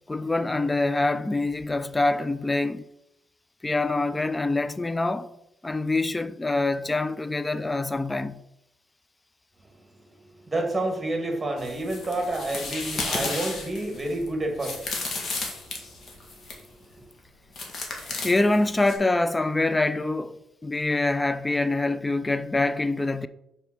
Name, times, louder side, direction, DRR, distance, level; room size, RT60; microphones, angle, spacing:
voice 1, 0.1-2.8 3.6-5.3 5.6-8.4 18.0-23.3, left 2 dB, 15° left, 0.4 m, -25 dB
voice 2, 10.2-14.9 15.6-15.7, right 1 dB, 20° right, 1.9 m, -29 dB
sound 1, 11.6-16.7 17.5-18.9, left 3 dB, 55° left, 2.0 m, -34 dB
5.4 x 4.3 x 6.1 m
cardioid pair, 90°, 0 cm